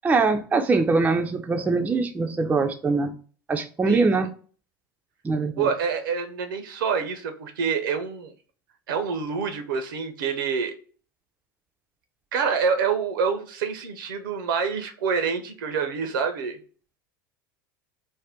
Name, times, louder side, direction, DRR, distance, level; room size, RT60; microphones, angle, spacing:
voice 1, 0.0-3.2 3.5-4.3 5.2-5.7, right 3 dB, 15° right, 0.4 m, -22 dB
voice 2, 5.6-8.3 8.9-10.7 12.3-16.6, right 6 dB, 70° right, 0.6 m, -27 dB
2.6 x 2.1 x 3.4 m
hypercardioid pair, 80°, 11 cm